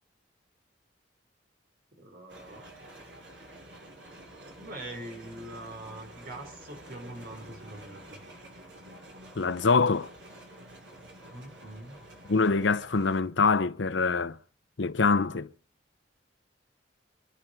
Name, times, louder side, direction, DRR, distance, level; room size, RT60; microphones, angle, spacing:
voice 1, 2.0-2.7 4.6-8.2 11.3-12.0, right 1 dB, 50° right, 4.5 m, -43 dB
sound 1, 2.3-13.2, right 1 dB, 70° right, 6.9 m, -49 dB
voice 2, 9.4-10.1 12.3-14.4 14.8-15.5, left 4 dB, 75° left, 0.7 m, -24 dB
26.5 x 10.5 x 4.5 m
head